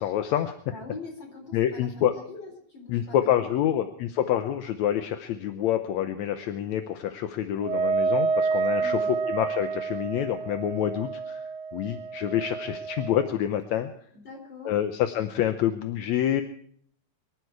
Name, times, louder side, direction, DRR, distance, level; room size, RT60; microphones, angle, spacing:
voice 1, 0.0-0.6 1.5-2.1 2.9-11.4 11.7-13.9 14.7-16.4, left 11 dB, 75° left, 8 dB, 2.1 m, -27 dB
voice 2, 0.7-3.8 8.8-9.1 14.1-14.7, left 3 dB, 35° left, 2 dB, 4.7 m, -43 dB
Wind instrument woodwind instrument, 7.6-13.3, right 4 dB, 65° right, 1.4 m, -29 dB
23.5 x 12.5 x 4.7 m, 0.63 s
omnidirectional pair, 3.3 m